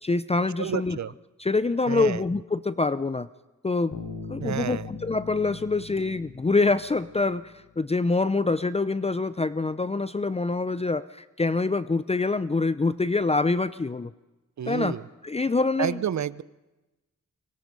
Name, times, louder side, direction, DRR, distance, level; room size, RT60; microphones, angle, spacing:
voice 1, 0.0-1.0 1.4-3.3 3.6-4.0 4.3-14.1 14.7-15.0 15.2-16.0, left 3 dB, 20° left, 14 dB, 0.6 m, -25 dB
voice 2, 0.6-1.1 1.9-2.2 4.4-4.9 14.6-15.0 15.8-16.4, right 9 dB, 60° right, 18 dB, 0.8 m, -29 dB
Bass guitar, 3.9-7.7, left 5 dB, 60° left, 3.5 m, -41 dB
26.0 x 23.5 x 5.4 m, 1.1 s
cardioid pair, 70°, 33 cm